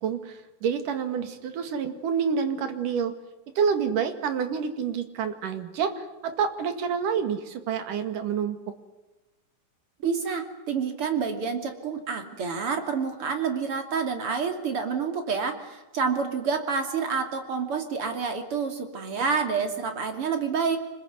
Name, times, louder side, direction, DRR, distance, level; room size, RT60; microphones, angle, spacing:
voice 1, 0.0-3.1 3.6-8.7, right 6 dB, 75° right, 8 dB, 3.6 m, -28 dB
voice 2, 10.0-20.8, right 5 dB, 45° right, 5 dB, 3.5 m, -28 dB
26.0 x 21.0 x 9.5 m, 1.1 s
omnidirectional pair, 3.7 m